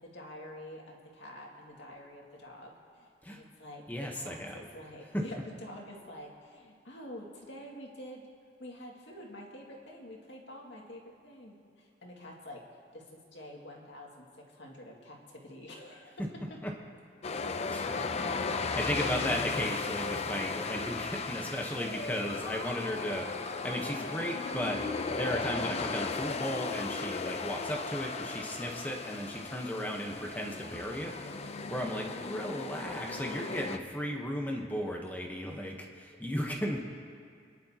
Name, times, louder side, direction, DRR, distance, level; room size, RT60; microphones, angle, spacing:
voice 1, 0.0-8.2 8.6-12.7 12.9-16.6 18.9-19.4, left 1 dB, 70° left, -2 dB, 2.2 m, -47 dB
voice 2, 3.9-4.7 16.6-16.7 17.7-17.9 18.6-24.8 25.1-31.1 31.7-36.8, equal, 10° left, 1 dB, 1.0 m, -35 dB
sound 1, 17.2-33.8, left 4 dB, 35° left, 0.5 m, -36 dB
30.0 x 10.5 x 2.9 m, 2.2 s
head